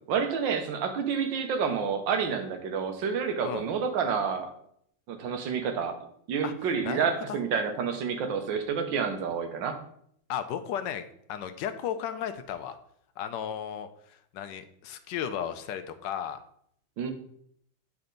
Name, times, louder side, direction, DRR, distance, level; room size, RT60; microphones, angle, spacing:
voice 1, 0.1-4.5 5.1-6.0 6.3-9.8 17.0-17.1, right 6 dB, 85° right, 6 dB, 1.6 m, -29 dB
voice 2, 10.3-12.8 13.2-16.4, left 9 dB, 80° left, 10 dB, 1.3 m, -34 dB
8.3 x 4.3 x 3.8 m, 0.68 s
omnidirectional pair, 2.0 m